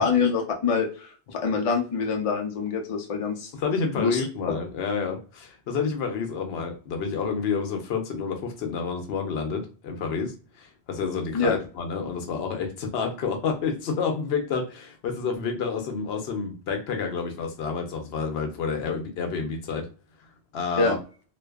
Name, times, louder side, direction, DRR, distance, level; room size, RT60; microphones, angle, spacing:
voice 1, 0.0-3.5 4.0-4.3 11.3-11.6 20.8-21.0, left 5 dB, 50° left, 3 dB, 0.4 m, -25 dB
voice 2, 3.6-19.9 20.5-21.0, left 5 dB, 75° left, 5 dB, 0.8 m, -29 dB
2.5 x 2.2 x 2.3 m, 0.38 s
omnidirectional pair, 1.1 m